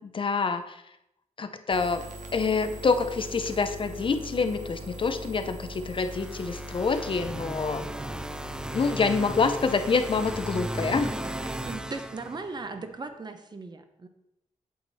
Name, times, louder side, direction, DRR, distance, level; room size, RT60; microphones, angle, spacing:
voice 1, 0.1-0.8 1.4-2.1 2.3-7.9 8.7-11.1, left 4 dB, 45° left, 9 dB, 0.6 m, -26 dB
sound 1, 1.7-11.8, equal, 80° right, 1.2 m, -41 dB
sound 2, 6.0-12.9, right 1 dB, 5° right, 0.3 m, -36 dB
voice 2, 11.6-14.1, right 3 dB, 35° right, 7 dB, 0.8 m, -37 dB
8.4 x 7.9 x 4.1 m, 0.83 s
wide cardioid pair, 150°, 13 cm